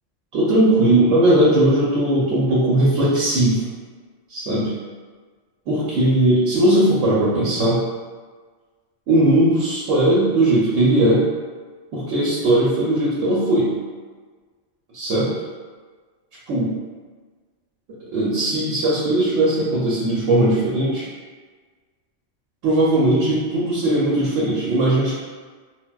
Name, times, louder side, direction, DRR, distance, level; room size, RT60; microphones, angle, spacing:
voice 1, 0.3-3.6 4.3-4.7 5.7-7.8 9.1-11.2 11.9-13.7 14.9-15.3 16.5-16.7 18.1-21.1 22.6-25.2, right 1 dB, 85° right, -7 dB, 1.0 m, -18 dB
3.3 x 2.3 x 2.2 m, 1.5 s
omnidirectional pair, 1.3 m